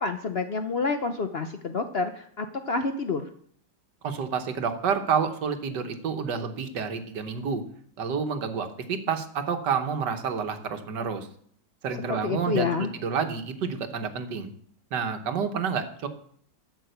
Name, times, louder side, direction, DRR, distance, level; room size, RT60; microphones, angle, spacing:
voice 1, 0.0-2.1 2.4-3.3 12.1-12.9, left 4 dB, 55° left, 7 dB, 0.7 m, -28 dB
voice 2, 4.0-7.6 8.0-11.3 11.8-14.5 14.9-16.1, right 6 dB, 80° right, 7 dB, 1.8 m, -29 dB
12.5 x 6.0 x 7.9 m, 0.62 s
omnidirectional pair, 1.8 m